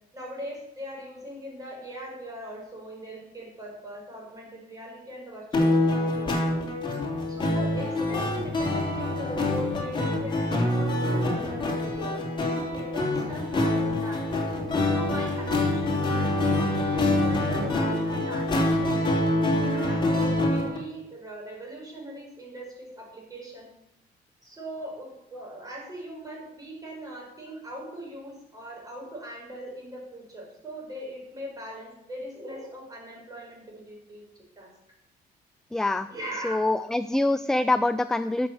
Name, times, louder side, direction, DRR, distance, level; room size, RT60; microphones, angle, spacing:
voice 1, 0.1-6.6 7.3-12.2 12.7-14.4 14.8-23.7 24.4-34.7 36.1-36.6, equal, 20° right, -2 dB, 5.7 m, -40 dB
sound 1, 5.5-20.8, left 1 dB, 30° left, 3.1 m, -25 dB
voice 2, 35.7-36.1 36.4-38.5, left 2 dB, 5° left, 13 dB, 0.3 m, -25 dB
11.5 x 7.2 x 7.0 m, 0.80 s
cardioid pair, 110°, 17 cm